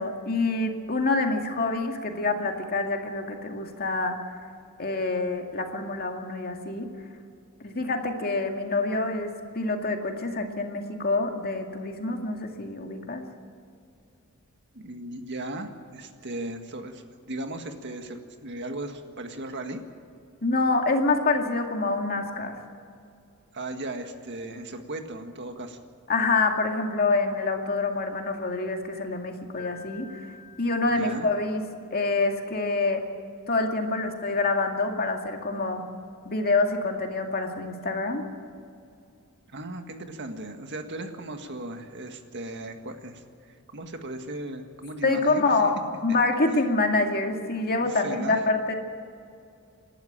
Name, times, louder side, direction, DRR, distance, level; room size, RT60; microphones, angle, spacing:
voice 1, 0.0-4.2 4.8-6.9 7.6-13.2 20.4-22.6 26.1-30.1 30.6-31.6 31.9-33.0 33.5-35.8 36.2-38.3 45.0-48.7, left 3 dB, 45° left, 3 dB, 2.2 m, -26 dB
voice 2, 14.7-19.8 23.5-25.8 30.8-31.3 39.5-45.6 47.8-48.4, right 1 dB, 55° right, 6 dB, 1.8 m, -37 dB
Piano, 29.6-31.7, left 7 dB, 25° left, 4.2 m, -49 dB
27.5 x 12.0 x 8.9 m, 2.5 s
head